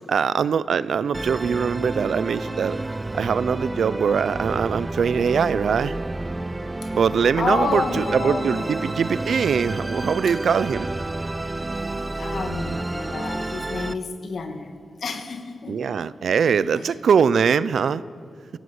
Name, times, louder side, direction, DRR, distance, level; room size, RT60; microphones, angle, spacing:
voice 1, 0.1-2.8 3.1-6.0 6.9-10.9 15.7-18.0, right 6 dB, 80° right, 17 dB, 0.6 m, -22 dB
Musical instrument, 1.1-13.9, right 2 dB, 20° right, 0.7 m, -30 dB
voice 2, 7.4-8.7 12.1-14.7 15.0-15.9 16.6-16.9, left 4 dB, 70° left, 6 dB, 2.3 m, -29 dB
25.0 x 16.5 x 8.2 m, 2.3 s
wide cardioid pair, 120°, 0 cm